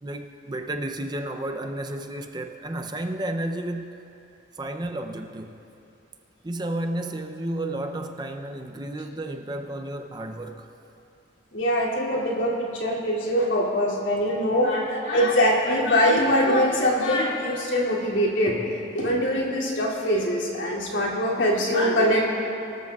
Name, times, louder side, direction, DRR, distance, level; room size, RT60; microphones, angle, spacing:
voice 1, 0.0-4.0 4.5-5.6 6.4-10.7, right 1 dB, 20° right, 5 dB, 0.5 m, -32 dB
voice 2, 11.5-18.6 18.9-22.2, equal, 80° left, -4 dB, 2.7 m, -23 dB
24.0 x 13.5 x 2.4 m, 2.8 s
head